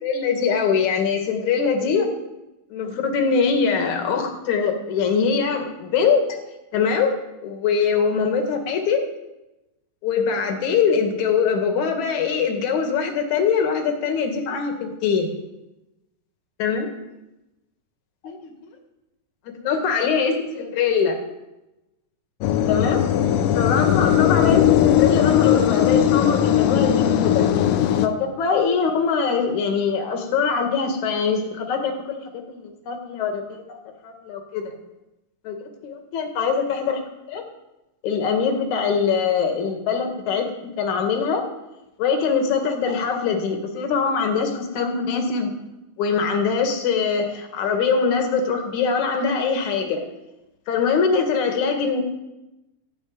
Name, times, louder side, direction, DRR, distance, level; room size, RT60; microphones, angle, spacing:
voice 1, 0.0-2.1 2.7-6.4 6.7-7.1 7.4-9.0 10.0-15.3 16.6-16.9 18.2-18.5 19.6-21.2 22.7-23.0 23.5-27.5 28.0-32.2 32.5-33.8 34.0-34.7 35.4-37.0 37.3-37.4 38.0-40.5 40.8-41.4 42.0-45.5 46.0-50.0 50.7-52.0, left 5 dB, 60° left, 3 dB, 3.2 m, -22 dB
sound 1, 22.4-28.1, left 11 dB, 85° left, 2.6 m, -18 dB
13.5 x 9.1 x 9.6 m, 0.96 s
omnidirectional pair, 3.9 m